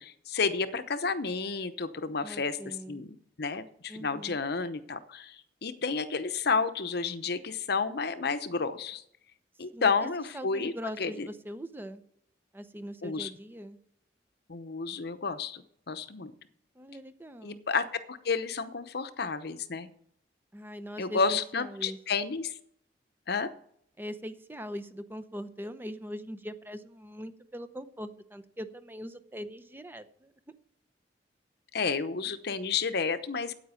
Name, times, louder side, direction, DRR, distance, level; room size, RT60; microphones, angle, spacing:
voice 1, 0.0-2.6 2.9-9.0 9.6-11.3 13.0-13.3 14.5-16.3 17.4-19.9 21.0-22.5 23.3-23.5 31.7-33.5, left 5 dB, 65° left, 0.9 m, -31 dB
voice 2, 2.2-3.0 3.9-4.4 9.7-12.0 12.5-13.8 16.8-17.6 20.5-22.0 24.0-30.5, equal, 10° right, 0.7 m, -41 dB
9.3 x 8.9 x 7.0 m
head